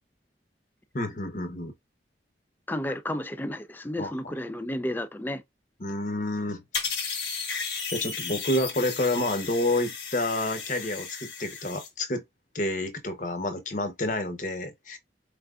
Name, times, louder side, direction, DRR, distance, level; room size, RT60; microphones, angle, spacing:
voice 1, 0.9-1.7 4.0-4.1 5.8-6.9 7.9-12.2 12.5-15.0, left 1 dB, 45° left, 0.9 m, -29 dB
voice 2, 2.7-5.4, left 1 dB, 10° left, 0.4 m, -32 dB
sound 1, 6.7-11.9, left 5 dB, 80° left, 1.5 m, -34 dB
4.5 x 3.4 x 2.4 m
head